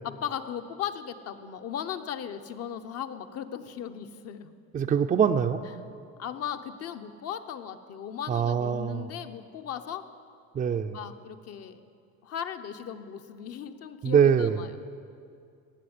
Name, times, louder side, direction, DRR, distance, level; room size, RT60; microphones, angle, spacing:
voice 1, 0.0-4.5 6.2-10.0 10.9-11.8 12.2-14.8, left 9 dB, 50° left, 8 dB, 1.0 m, -37 dB
voice 2, 4.7-5.6 8.3-9.1 10.5-11.0 14.0-14.6, right 7 dB, 25° right, 5 dB, 0.5 m, -23 dB
18.0 x 7.1 x 9.5 m, 2.4 s
cardioid pair, 115°, 32 cm